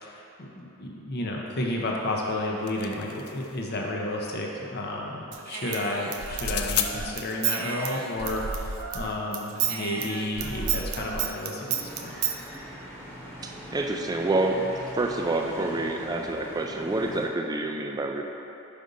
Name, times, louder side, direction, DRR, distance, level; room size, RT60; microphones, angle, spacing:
voice 1, 0.0-12.2, left 1 dB, 45° left, -1 dB, 0.7 m, -32 dB
sound 1, 2.3-3.6 6.3-6.9, left 11 dB, 70° left, 0.3 m, -31 dB
Human voice / Scissors, 5.3-9.1 9.3-12.4, right 7 dB, 70° right, 0.5 m, -31 dB
sound 2, 11.7-17.3, equal, 10° left, 0.9 m, -41 dB
voice 2, 13.4-18.2, right 2 dB, 15° right, 2 dB, 0.3 m, -28 dB
5.2 x 5.1 x 3.9 m, 2.9 s
head